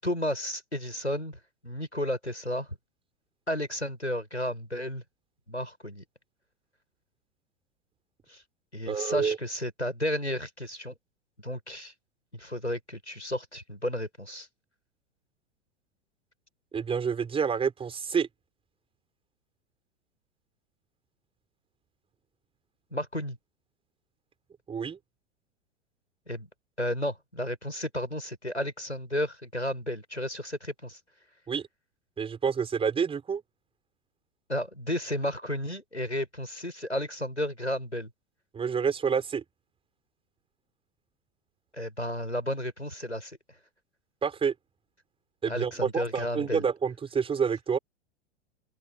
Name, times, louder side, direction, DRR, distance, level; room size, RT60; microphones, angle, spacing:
voice 1, 0.0-2.8 3.5-5.0 5.5-6.0 8.3-8.4 8.7-10.9 11.4-11.9 12.3-14.5 22.9-23.4 26.3-26.5 26.8-31.0 34.5-38.1 41.7-43.4 45.5-46.7, left 1 dB, 90° left, 7.1 m, -32 dB
voice 2, 8.9-9.4 16.7-18.3 24.7-25.0 31.5-31.6 32.2-33.4 38.5-39.4 44.2-44.5 45.4-47.8, right 6 dB, 15° right, 4.9 m, -28 dB
open air
figure-of-eight pair, 95°, 33 cm